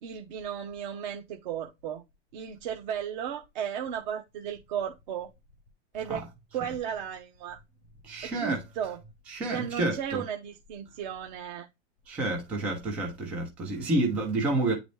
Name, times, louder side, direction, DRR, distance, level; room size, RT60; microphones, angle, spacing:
voice 1, 0.0-2.0 2.3-5.3 5.9-6.3 6.5-7.6 8.2-9.0 9.5-11.7, right 8 dB, 40° right, 0.8 m, -35 dB
voice 2, 8.0-8.6 9.3-10.2 12.1-14.7, right 2 dB, 5° right, 0.3 m, -29 dB
9.0 x 4.0 x 3.1 m
supercardioid pair, 170°, 36 cm